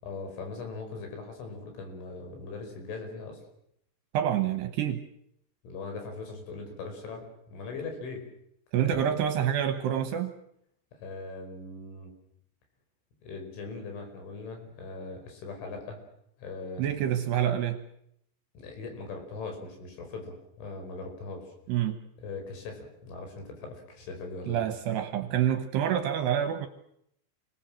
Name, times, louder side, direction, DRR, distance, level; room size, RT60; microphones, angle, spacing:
voice 1, 0.0-3.4 5.6-7.3 7.5-8.2 8.9-9.0 10.9-12.1 13.2-16.0 16.4-16.8 18.5-21.5 22.2-24.6, left 3 dB, 65° left, 4 dB, 7.5 m, -40 dB
voice 2, 4.1-5.0 8.7-10.3 16.8-17.8 21.7-22.0 24.5-26.7, right 10 dB, 70° right, 8 dB, 2.8 m, -27 dB
29.0 x 19.5 x 7.6 m, 0.74 s
omnidirectional pair, 5.8 m